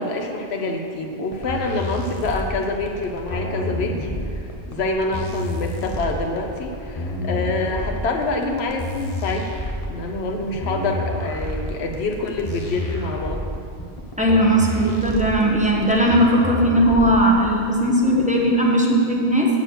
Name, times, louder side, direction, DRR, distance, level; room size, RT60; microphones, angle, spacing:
voice 1, 0.0-9.5 9.9-13.4, left 2 dB, 85° left, 2 dB, 1.1 m, -26 dB
sound 1, 1.3-17.3, left 1 dB, 35° left, 1.1 m, -29 dB
voice 2, 14.2-19.5, right 1 dB, 5° right, -3 dB, 1.2 m, -18 dB
7.8 x 7.1 x 6.3 m, 2.4 s
omnidirectional pair, 1.0 m